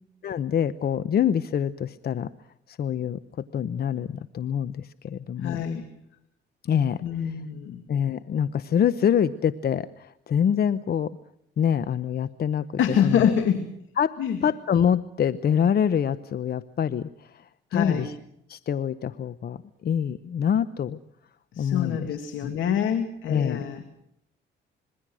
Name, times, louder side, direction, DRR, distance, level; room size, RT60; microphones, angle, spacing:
voice 1, 0.2-2.3 2.7-5.6 6.6-7.3 7.9-11.2 11.6-13.3 14.0-18.1 18.5-21.0 21.6-22.1 22.4-22.5 23.3-23.6, left 8 dB, 50° left, 14 dB, 0.8 m, -26 dB
voice 2, 5.4-5.9 7.0-7.8 12.8-13.6 14.2-14.4 17.7-18.1 21.5-23.8, left 8 dB, 80° left, 7 dB, 2.5 m, -25 dB
26.5 x 22.0 x 6.3 m, 0.74 s
cardioid pair, 90°, 20 cm